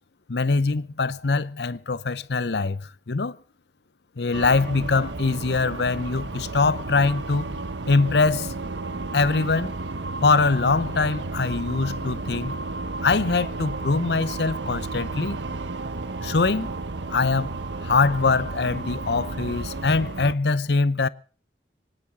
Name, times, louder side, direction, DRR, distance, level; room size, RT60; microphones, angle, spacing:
voice 1, 0.3-3.4 4.2-7.6 7.9-8.5 9.1-9.7 10.2-12.6 13.0-15.4 16.2-16.7 17.1-17.6 17.8-21.1, left 4 dB, 70° left, 0.7 m, -23 dB
sound 1, 4.3-20.3, right 3 dB, 90° right, 1.2 m, -32 dB
24.0 x 10.0 x 6.1 m
head